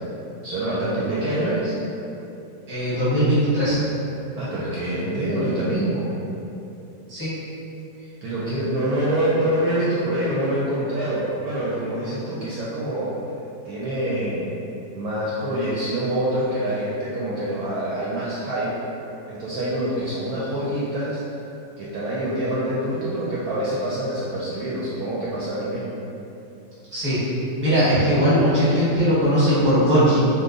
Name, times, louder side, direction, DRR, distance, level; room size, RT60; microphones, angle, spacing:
voice 1, 0.4-1.8 4.4-6.1 8.2-13.2 13.6-14.5 14.9-18.7 19.3-21.2 21.8-26.0, right 1 dB, 70° right, -8 dB, 0.9 m, -25 dB
voice 2, 2.7-3.8 7.1-7.3 26.9-27.2 27.6-30.2, equal, 10° right, -12 dB, 0.7 m, -19 dB
2.9 x 2.2 x 3.6 m, 2.9 s
omnidirectional pair, 1.9 m